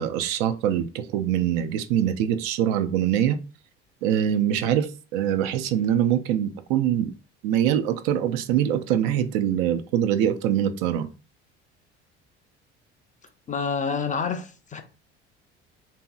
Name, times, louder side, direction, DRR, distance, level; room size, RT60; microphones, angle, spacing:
voice 1, 0.0-3.4 4.0-7.1 7.4-11.1, right 10 dB, 65° right, 0.5 m, -23 dB
voice 2, 13.5-14.8, left 5 dB, 25° left, 0.4 m, -28 dB
2.8 x 2.7 x 2.3 m
hypercardioid pair, 65°, 34 cm